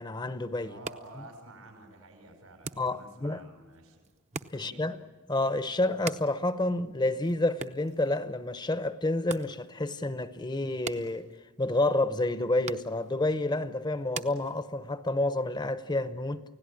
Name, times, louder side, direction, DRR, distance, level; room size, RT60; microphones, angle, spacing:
voice 1, 0.0-0.8 2.8-3.4 4.5-5.0 5.3-11.3 11.6-16.4, left 2 dB, 20° left, 0.8 m, -29 dB
sound 1, 0.6-15.1, right 5 dB, 30° right, 0.7 m, -46 dB
voice 2, 0.6-4.0 4.5-4.9, right 2 dB, 85° right, 5.5 m, -50 dB
29.5 x 17.0 x 9.9 m
head